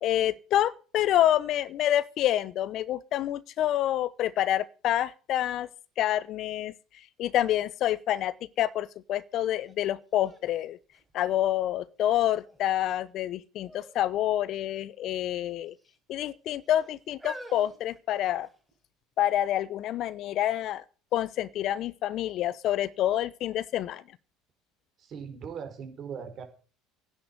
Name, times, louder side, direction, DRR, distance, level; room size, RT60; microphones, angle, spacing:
voice 1, 0.0-5.7 6.0-6.7 7.2-10.8 11.1-15.7 16.1-18.5 19.2-20.8 21.1-24.0, left 12 dB, 55° left, 0.8 m, -27 dB
sound 1, 9.6-9.7 10.2-11.7 12.3-12.8 13.6-14.0 14.3-14.4 15.3-16.0 16.7-18.7 19.5-19.6, right 1 dB, 5° right, 5.9 m, -47 dB
voice 2, 25.1-26.4, right 7 dB, 45° right, 4.3 m, -39 dB
10.5 x 7.9 x 9.6 m
hypercardioid pair, 75°, 0 cm